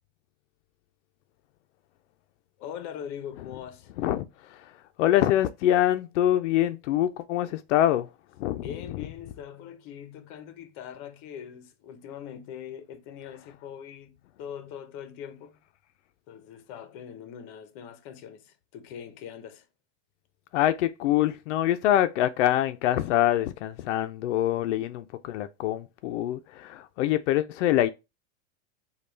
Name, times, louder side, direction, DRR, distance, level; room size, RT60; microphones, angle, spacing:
voice 1, 2.6-3.9 8.5-15.6 16.3-19.7, left 8 dB, 35° left, 0.7 m, -42 dB
voice 2, 4.0-8.1 8.4-8.7 20.5-27.9, left 12 dB, 75° left, 0.5 m, -25 dB
5.2 x 2.3 x 4.3 m
supercardioid pair, 160°, 36 cm